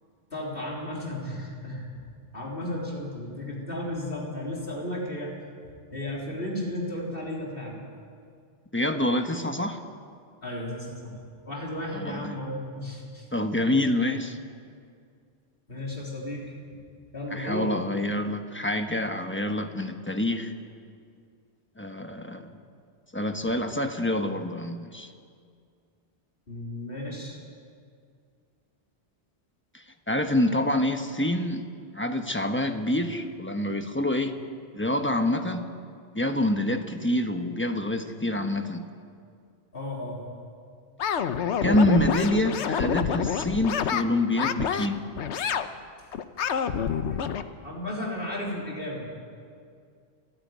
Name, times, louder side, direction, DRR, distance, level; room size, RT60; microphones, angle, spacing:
voice 1, 0.3-2.0 2.3-5.3 5.9-7.8 10.4-11.2 11.4-13.3 15.7-16.5 17.1-17.7 26.5-27.4 39.7-40.2 46.0-46.1 47.1-47.2 47.6-49.2, left 1 dB, 55° left, -3 dB, 4.0 m, -34 dB
voice 2, 8.7-9.8 11.9-12.3 13.3-14.4 17.3-20.5 21.8-22.6 23.1-25.1 29.7-31.7 31.9-34.3 34.7-35.7 36.1-38.8 41.6-45.0, left 1 dB, 10° left, 6 dB, 1.1 m, -26 dB
sound 1, 41.0-44.0 44.4-44.9 45.2-45.7 46.1-47.4, left 7 dB, 80° left, 1.1 m, -27 dB
28.5 x 10.0 x 9.4 m, 2.2 s
omnidirectional pair, 1.2 m